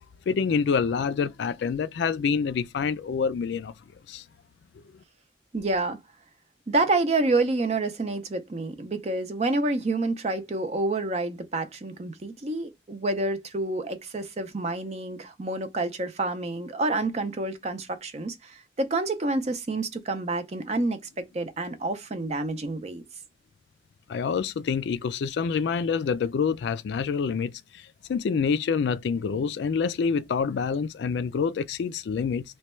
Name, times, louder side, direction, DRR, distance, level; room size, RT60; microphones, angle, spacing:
voice 1, 0.3-3.7 4.1-4.2 24.1-32.4, left 6 dB, 65° left, 0.3 m, -27 dB
voice 2, 5.5-6.0 6.7-23.0, right 2 dB, 35° right, 0.5 m, -28 dB
3.1 x 2.2 x 4.2 m
head